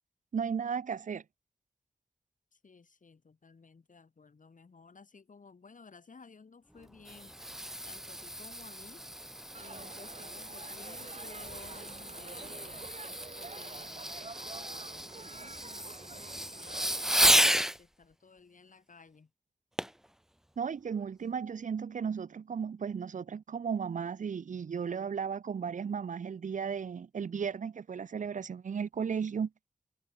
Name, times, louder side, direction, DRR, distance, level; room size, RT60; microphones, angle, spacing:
voice 1, 0.3-1.2 20.6-29.5, right 6 dB, 70° right, 0.6 m, -35 dB
voice 2, 2.5-9.1 9.6-12.9 13.3-17.2 17.6-19.3, left 4 dB, 75° left, 6.5 m, -56 dB
Fireworks, 6.8-17.8 19.8-20.1 20.6-20.7, equal, 5° right, 0.4 m, -33 dB
Crowd, 9.5-17.1, right 3 dB, 55° right, 2.7 m, -48 dB
cardioid pair, 50°, 14 cm